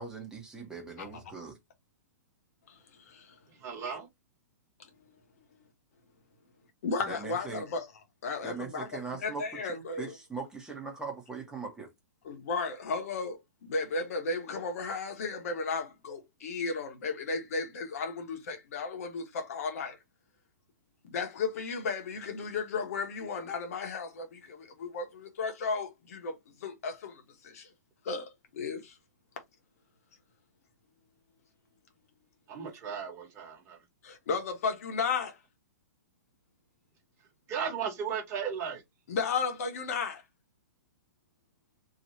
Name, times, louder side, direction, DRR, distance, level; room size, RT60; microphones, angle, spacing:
voice 1, 0.0-1.6 7.1-7.6 8.4-9.4 9.7-11.9, right 4 dB, 5° right, 1.4 m, -40 dB
voice 2, 2.7-3.4 3.8-4.0 6.8-7.9 8.2-10.2 12.2-20.0 21.0-27.7 28.0-29.0 34.0-35.4 39.1-40.2, left 4 dB, 55° left, 1.3 m, -34 dB
voice 3, 3.6-4.1 32.5-33.8 37.5-38.8, right 7 dB, 30° right, 1.6 m, -35 dB
3.1 x 3.0 x 2.8 m
hypercardioid pair, 115°, 9 cm